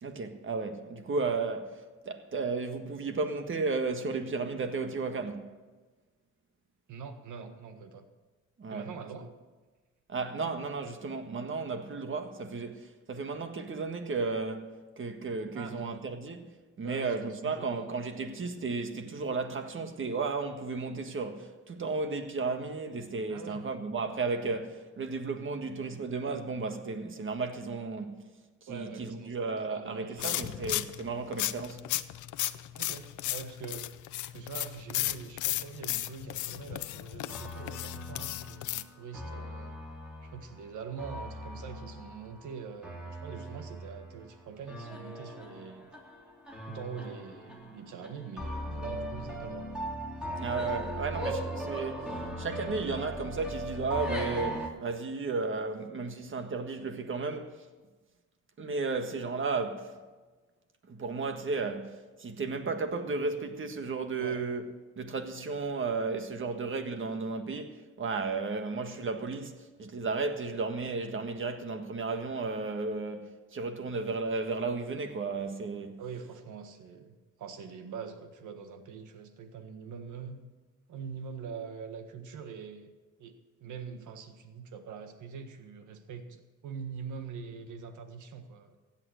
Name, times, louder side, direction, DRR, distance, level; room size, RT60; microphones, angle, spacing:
voice 1, 0.0-5.5 8.6-8.9 10.1-16.4 16.8-28.1 28.6-31.8 50.4-57.6 58.6-59.9 60.9-64.6 65.0-76.0, right 4 dB, 40° right, 1.6 m, -34 dB
voice 2, 6.9-8.0 8.7-9.3 15.5-16.0 16.8-17.1 17.4-17.7 23.3-23.6 28.7-30.6 32.7-33.9 34.3-39.8 40.2-45.9 46.7-49.8 64.2-64.4 76.0-80.4 80.9-82.9 83.2-88.8, right 6 dB, 75° right, 1.7 m, -44 dB
sound 1, 30.2-38.8, left 14 dB, 80° left, 0.7 m, -35 dB
sound 2, 37.3-54.7, right 1 dB, 5° right, 3.4 m, -39 dB
15.5 x 9.0 x 6.4 m
cardioid pair, 90°, 30 cm